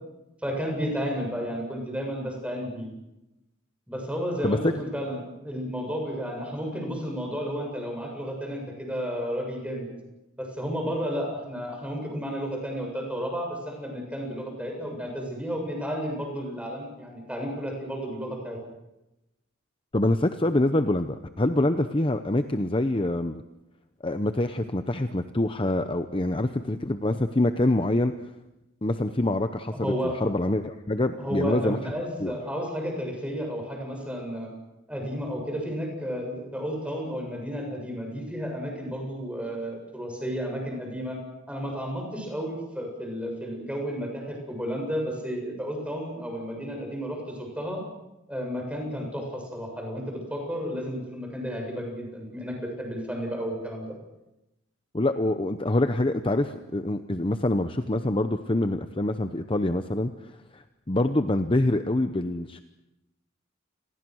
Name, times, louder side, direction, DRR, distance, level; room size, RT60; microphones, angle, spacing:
voice 1, 0.4-2.9 3.9-9.9 10.4-18.6 29.7-30.2 31.2-34.5 34.9-41.2 41.5-47.8 48.3-54.0, equal, 5° right, 1 dB, 7.5 m, -32 dB
voice 2, 19.9-23.4 24.0-28.1 28.8-31.8 32.2-32.3 54.9-62.6, left 1 dB, 25° left, 9 dB, 0.8 m, -25 dB
29.0 x 22.0 x 6.4 m, 0.95 s
head